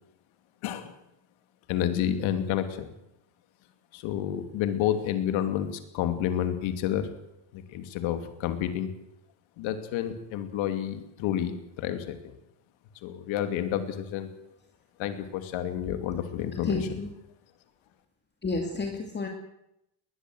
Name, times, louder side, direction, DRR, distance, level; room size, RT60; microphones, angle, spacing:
voice 1, 0.6-0.9 1.7-2.9 3.9-7.1 7.5-8.9 9.6-12.3 13.0-14.3 15.0-16.8, left 10 dB, 90° left, 8 dB, 2.8 m, -30 dB
voice 2, 16.5-17.1 18.4-19.3, left 3 dB, 25° left, 3 dB, 2.7 m, -31 dB
21.0 x 20.5 x 7.9 m, 0.83 s
cardioid pair, 140°, 45 cm